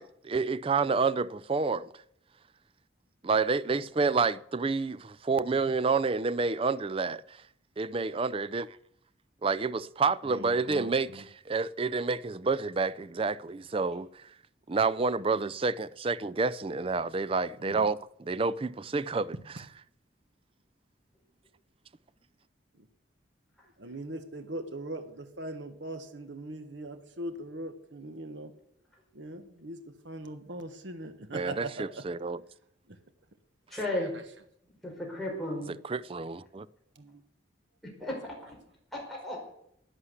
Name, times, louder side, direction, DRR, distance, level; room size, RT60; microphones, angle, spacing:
voice 1, 0.0-1.9 3.2-7.4 7.8-8.8 9.4-14.3 14.7-19.4 31.3-32.4 35.9-36.7, right 4 dB, 30° right, 0.4 m, -29 dB
voice 2, 10.2-11.2 17.6-17.9 22.8-22.9 23.8-28.5 29.1-32.0 32.9-33.0 33.9-34.1 36.9-37.2, right 1 dB, 70° right, 1.3 m, -41 dB
voice 3, 33.7-34.1 34.8-35.7 37.8-38.3 39.2-39.4, left 1 dB, ahead, 4.7 m, -34 dB
11.5 x 9.8 x 8.1 m
head